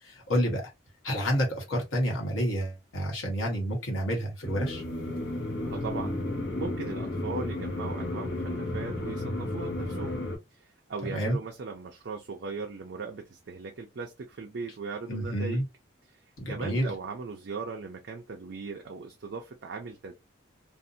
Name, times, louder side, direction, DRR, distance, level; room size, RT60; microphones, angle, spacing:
voice 1, 0.0-0.7 1.0-4.8 11.0-11.4 15.1-15.6 16.4-16.9, equal, 85° left, 1.1 m, -29 dB
sound 1, 4.4-10.4, left 1 dB, 60° left, 0.7 m, -33 dB
voice 2, 5.6-6.2 6.6-10.2 10.5-15.6 16.1-20.1, right 4 dB, 60° right, 0.4 m, -38 dB
2.6 x 2.1 x 2.5 m
head